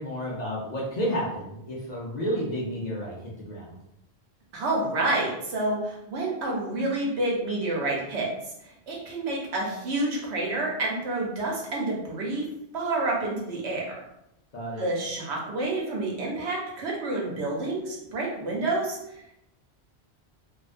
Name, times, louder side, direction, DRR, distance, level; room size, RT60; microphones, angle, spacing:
voice 1, 0.0-3.8 14.5-14.9, equal, 55° left, -5 dB, 0.5 m, -31 dB
voice 2, 4.5-8.3 8.6-12.4 12.7-13.8 14.8-19.4, right 2 dB, 85° right, -2 dB, 1.0 m, -29 dB
2.4 x 2.1 x 2.4 m, 0.81 s
omnidirectional pair, 1.1 m